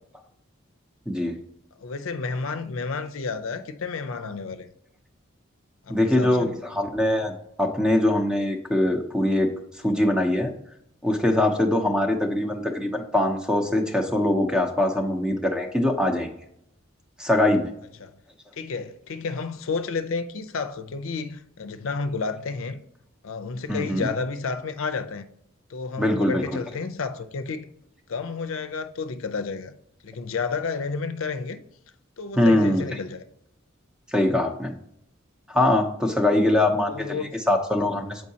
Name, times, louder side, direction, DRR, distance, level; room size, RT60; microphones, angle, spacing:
voice 1, 1.8-4.7 5.9-6.6 18.0-18.1 18.5-22.8 23.2-25.2 25.7-27.7 28.1-29.7 30.0-31.6 32.2-33.2 36.8-37.3, left 4 dB, 80° left, 0.5 m, -31 dB
voice 2, 5.9-9.5 9.8-10.5 11.0-16.4 17.2-17.7 23.7-24.1 26.0-26.6 32.4-32.8 34.1-34.7 35.5-38.2, left 1 dB, 5° right, 0.6 m, -22 dB
7.3 x 4.6 x 2.8 m
head